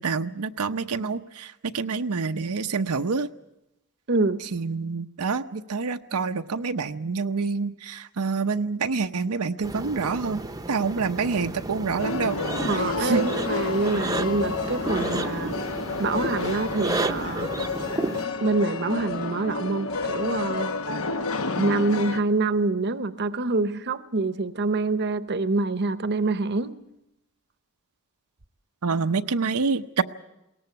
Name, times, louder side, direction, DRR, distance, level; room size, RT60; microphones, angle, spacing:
voice 1, 0.0-3.3 4.5-12.4 13.0-13.3 28.8-30.0, right 4 dB, 90° right, 7 dB, 0.8 m, -27 dB
voice 2, 4.1-4.4 12.7-15.5 16.0-17.5 18.4-20.7 21.6-26.7, right 3 dB, 50° right, 12 dB, 0.8 m, -26 dB
sound 1, 9.6-18.3, right 2 dB, 15° right, 0.8 m, -32 dB
sound 2, 12.0-22.2, left 3 dB, 65° left, 1.0 m, -30 dB
21.5 x 18.0 x 8.2 m, 0.88 s
head